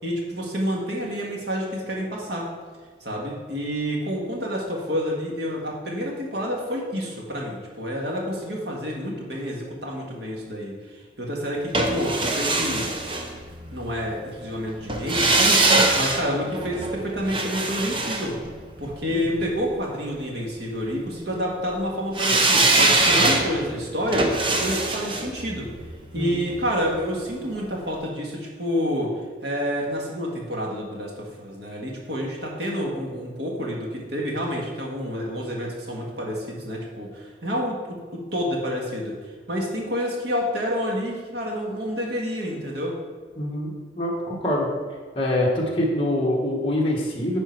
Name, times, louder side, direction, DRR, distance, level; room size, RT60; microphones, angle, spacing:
voice 1, 0.0-2.5 3.0-12.9 13.7-15.6 16.0-18.4 18.8-24.3 24.6-25.7 26.1-29.1 29.4-39.2 39.5-43.0, equal, 65° right, -2 dB, 1.8 m, -28 dB
sound 1, 11.7-13.9 14.9-19.1 22.1-27.1 27.4-27.5, right 2 dB, 30° right, 0.7 m, -23 dB
voice 2, 43.4-44.7 45.1-47.4, left 1 dB, 30° left, -3 dB, 1.5 m, -25 dB
10.5 x 4.4 x 4.5 m, 1.5 s
head